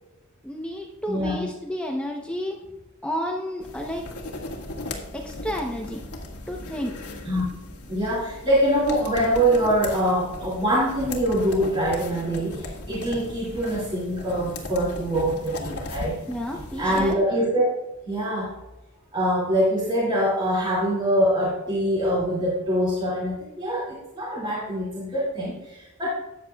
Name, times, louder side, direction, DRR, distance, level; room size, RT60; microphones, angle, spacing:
voice 1, 0.4-2.6 3.0-4.0 5.1-6.0 6.5-7.0 16.3-17.2, equal, 5° left, 0 dB, 0.8 m, -31 dB
voice 2, 1.1-1.5 7.2-7.4 7.9-16.2 16.7-17.6 18.1-18.5 19.1-26.1, equal, 25° right, -6 dB, 2.4 m, -24 dB
sound 1, 3.6-17.1, left 2 dB, 90° left, 1.7 m, -37 dB
13.5 x 8.7 x 2.3 m, 1.0 s
head